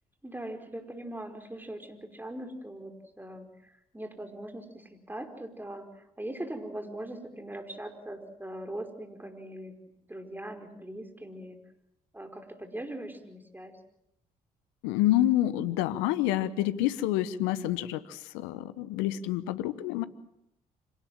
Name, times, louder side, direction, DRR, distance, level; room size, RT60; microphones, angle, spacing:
voice 1, 0.2-3.5 3.9-5.9 6.2-9.7 10.1-11.6 12.1-13.7, right 1 dB, 10° right, 5 dB, 4.9 m, -40 dB
voice 2, 14.8-20.0, left 13 dB, 80° left, 15 dB, 1.0 m, -28 dB
26.0 x 18.5 x 7.5 m, 0.80 s
hypercardioid pair, 45°, 20 cm